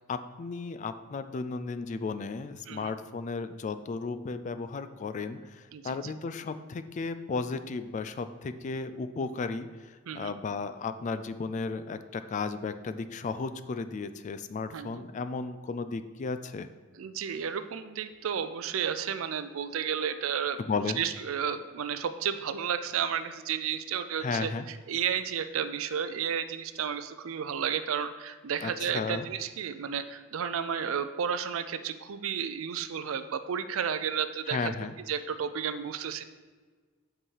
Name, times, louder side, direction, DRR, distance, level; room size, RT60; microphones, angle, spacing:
voice 1, 0.1-16.7 20.6-21.0 24.2-24.7 28.6-29.3 34.5-34.9, left 4 dB, 35° left, 11 dB, 0.3 m, -34 dB
voice 2, 5.7-6.1 10.1-10.3 14.7-15.0 17.0-20.6 21.0-24.5 24.9-34.7 35.1-36.2, right 7 dB, 80° right, 11 dB, 0.4 m, -32 dB
5.3 x 4.8 x 5.5 m, 1.5 s
head